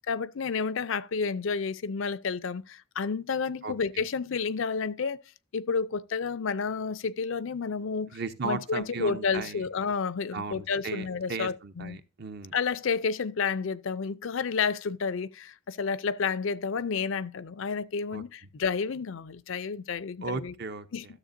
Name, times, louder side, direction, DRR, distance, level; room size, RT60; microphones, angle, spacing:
voice 1, 0.1-5.2 5.5-8.1 8.4-12.0 12.5-20.5 20.9-21.0, left 5 dB, 60° left, 0.4 m, -30 dB
voice 2, 3.6-4.0 8.1-9.7 10.3-12.5 18.1-18.2 20.2-20.9, right 4 dB, 50° right, 0.7 m, -36 dB
13.0 x 7.1 x 2.6 m
head